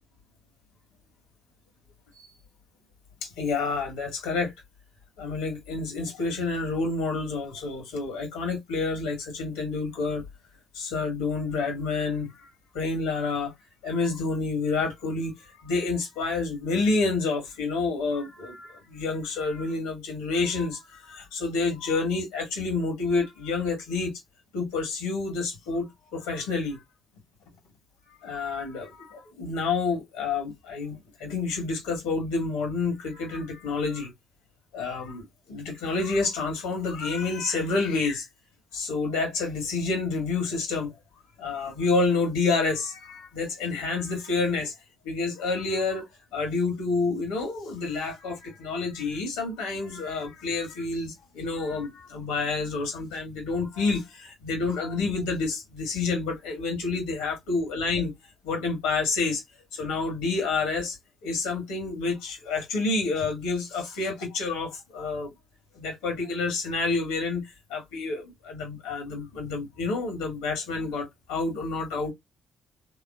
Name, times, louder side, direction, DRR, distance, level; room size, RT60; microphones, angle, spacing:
voice 1, 3.2-4.5 5.2-10.2 10.7-12.5 12.7-13.5 13.8-15.3 15.6-24.1 24.5-26.8 28.2-34.1 34.7-38.3 38.7-40.9 41.4-44.7 45.0-46.0 46.3-58.1 58.4-59.4 59.7-61.0 61.2-65.3 65.7-67.4 67.7-72.1, left 3 dB, 75° left, 1.5 m, -29 dB
3.3 x 3.0 x 2.3 m
hypercardioid pair, 45°, 0 cm